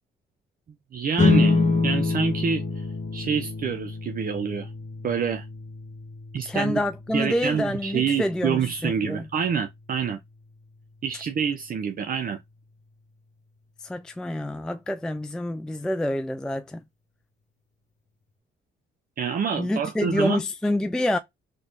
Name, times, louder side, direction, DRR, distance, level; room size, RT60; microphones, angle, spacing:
voice 1, 0.9-2.9 3.1-4.7 5.0-5.5 6.3-6.8 7.1-10.2 11.0-12.4 19.2-20.4, right 7 dB, 45° right, 0.6 m, -27 dB
sound 1, 1.2-11.9, left 3 dB, 35° left, 1.0 m, -28 dB
voice 2, 6.5-9.3 13.8-16.8 19.6-21.2, left 1 dB, 5° left, 0.3 m, -27 dB
4.0 x 3.2 x 2.6 m
cardioid pair, 90°, 20 cm